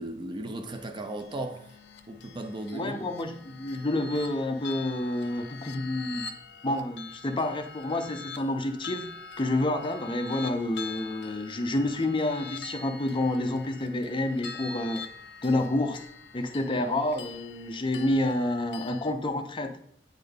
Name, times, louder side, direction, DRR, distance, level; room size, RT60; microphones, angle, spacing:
voice 1, 0.0-1.7 2.1-3.1, right 1 dB, 25° right, 0.4 m, -36 dB
sound 1, 0.7-19.1, left 5 dB, 85° left, 0.6 m, -44 dB
voice 2, 2.7-6.2 6.6-9.1 9.4-15.0 15.4-16.0 16.3-19.7, left 1 dB, 30° left, 0.6 m, -29 dB
8.6 x 3.7 x 3.6 m
head